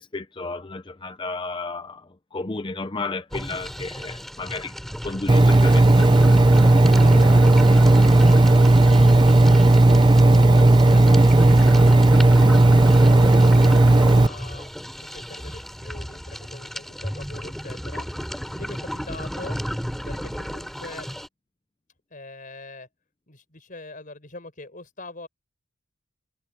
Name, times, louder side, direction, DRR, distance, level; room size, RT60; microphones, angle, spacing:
voice 1, 0.0-2.0 2.3-4.7 5.0-6.1, left 3 dB, 25° left, 0.6 m, -32 dB
sound 1, 3.3-21.3, equal, ahead, 3.4 m, -33 dB
Engine, 5.3-14.3, right 2 dB, 20° right, 0.5 m, -14 dB
voice 2, 7.0-11.6 12.2-14.7 15.1-18.1 18.5-19.6 20.1-21.1 22.1-22.9 23.3-25.3, left 2 dB, 40° left, 5.3 m, -41 dB
head